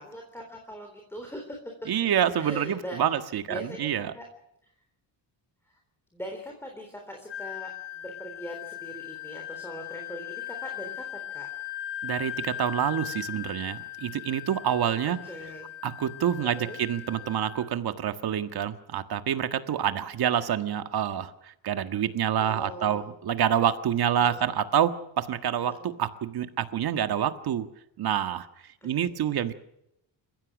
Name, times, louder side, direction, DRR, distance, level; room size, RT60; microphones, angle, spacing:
voice 1, 0.0-1.6 2.0-2.1 2.4-3.0 3.5-4.3 5.7-5.8 6.1-11.5 15.1-15.7 16.6-16.8 22.4-23.1 24.2-24.5 28.8-29.4, equal, 5° left, 2 dB, 3.8 m, -41 dB
voice 2, 1.9-4.1 12.0-15.2 15.8-27.7 28.0-28.5 28.8-29.6, right 9 dB, 50° right, 8 dB, 1.7 m, -27 dB
Wind instrument woodwind instrument, 7.3-17.7, left 12 dB, 60° left, 2.3 m, -39 dB
29.5 x 16.0 x 6.2 m, 0.81 s
cardioid pair, 170°, 46 cm